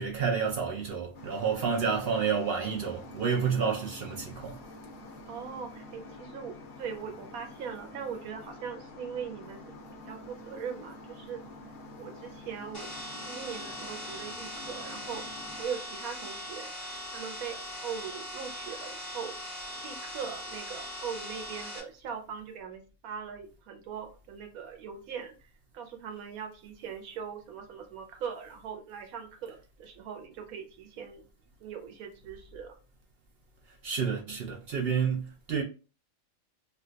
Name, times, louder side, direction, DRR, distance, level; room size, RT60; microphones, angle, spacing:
voice 1, 0.0-4.6 33.8-35.6, right 6 dB, 65° right, 0.6 m, -29 dB
sound 1, 1.1-15.6, left 2 dB, 60° left, 0.6 m, -47 dB
voice 2, 5.3-9.6 10.1-11.4 12.0-12.9 13.2-15.2 15.6-16.7 17.1-19.3 19.8-25.5 25.7-31.2 31.6-32.7, right 7 dB, 85° right, 1.1 m, -40 dB
sound 2, 12.7-21.8, left 1 dB, 25° left, 0.9 m, -40 dB
2.6 x 2.2 x 3.7 m
omnidirectional pair, 1.5 m